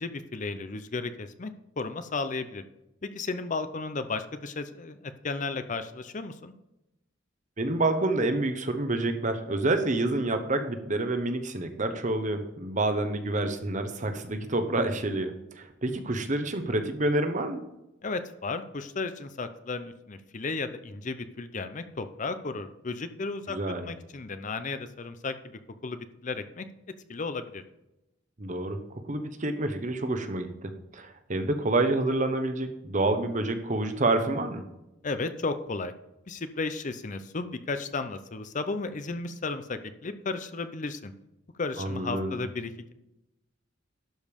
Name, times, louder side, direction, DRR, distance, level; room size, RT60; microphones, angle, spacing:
voice 1, 0.0-1.5 1.8-2.6 3.0-6.5 18.0-23.6 23.8-25.4 25.8-26.7 27.1-27.6 35.0-35.9 36.3-41.1 41.6-42.9, left 3 dB, 40° left, 10 dB, 0.6 m, -34 dB
voice 2, 7.6-17.6 23.5-23.9 28.4-28.8 29.1-34.6 41.8-42.4, right 2 dB, 40° right, 7 dB, 1.0 m, -28 dB
12.0 x 5.2 x 5.2 m, 0.91 s
head